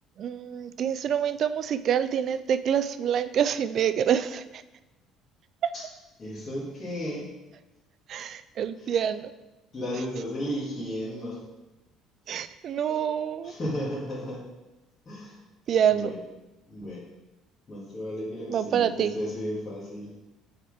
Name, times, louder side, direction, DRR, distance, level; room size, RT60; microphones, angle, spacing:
voice 1, 0.2-4.6 5.6-5.7 8.1-9.3 12.3-13.5 15.7-16.1 18.5-19.1, right 8 dB, 50° right, 14 dB, 0.3 m, -26 dB
voice 2, 6.2-7.2 9.7-11.4 13.4-14.5 15.1-15.4 15.9-16.1 16.7-17.0 17.7-20.1, equal, 30° left, -10 dB, 2.2 m, -34 dB
6.5 x 4.3 x 5.0 m, 1.0 s
cardioid pair, 125°, 0 cm